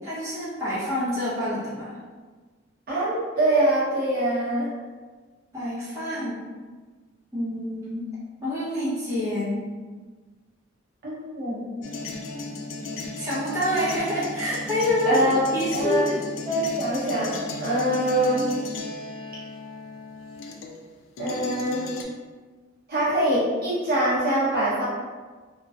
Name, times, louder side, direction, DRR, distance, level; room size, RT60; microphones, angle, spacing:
voice 1, 0.0-2.0 5.5-6.5 7.3-8.1 8.4-9.6 13.2-16.2, left 1 dB, 15° right, -11 dB, 0.8 m, -27 dB
voice 2, 2.9-4.7 11.0-11.8 15.0-15.4 15.7-16.0 16.4-17.3 17.6-18.4 21.2-21.8 22.9-24.8, right 1 dB, 50° right, -9 dB, 0.8 m, -24 dB
sound 1, 11.8-20.9 21.2-22.0, left 2 dB, 70° left, 0.3 m, -35 dB
2.4 x 2.2 x 2.4 m, 1.4 s
head